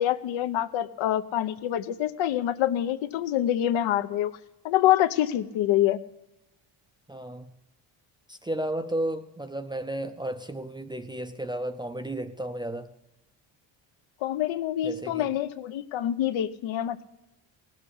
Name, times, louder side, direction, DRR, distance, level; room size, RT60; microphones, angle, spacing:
voice 1, 0.0-4.4 4.6-6.0 14.2-17.0, left 12 dB, 80° left, 11 dB, 0.8 m, -26 dB
voice 2, 7.1-7.5 8.3-12.9 14.8-15.3, right 1 dB, 10° right, 8 dB, 0.4 m, -33 dB
17.5 x 7.7 x 8.3 m, 0.94 s
cardioid pair, 160°, 46 cm